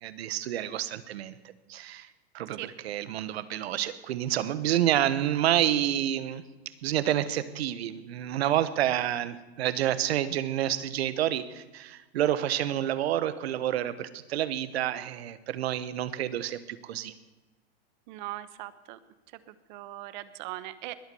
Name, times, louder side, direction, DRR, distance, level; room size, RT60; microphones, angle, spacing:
voice 1, 0.0-1.3 1.7-2.1 2.3-6.4 6.8-17.1, right 12 dB, 75° right, 15 dB, 1.2 m, -29 dB
voice 2, 18.1-19.0 19.5-20.9, right 16 dB, 45° right, 15 dB, 1.1 m, -40 dB
21.0 x 8.2 x 7.0 m, 1.1 s
supercardioid pair, 145°, 32 cm